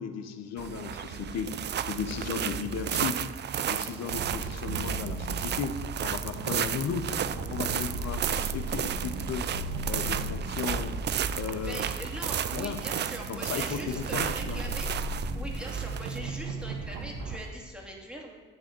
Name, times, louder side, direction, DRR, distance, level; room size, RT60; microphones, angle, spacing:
voice 1, 0.0-1.5 1.9-3.2 3.5-5.8 6.0-7.1 7.5-9.5 9.9-11.0 11.3-11.8 12.5-12.8 13.3-14.6, left 7 dB, 55° left, 8 dB, 0.9 m, -35 dB
sound 1, 0.6-17.5, right 9 dB, 35° right, 0.4 m, -34 dB
sound 2, 4.1-17.4, right 2 dB, 70° right, 1.1 m, -36 dB
voice 2, 11.5-18.4, right 1 dB, 5° right, -2 dB, 2.1 m, -42 dB
10.5 x 3.6 x 6.9 m, 1.4 s
hypercardioid pair, 55°, 31 cm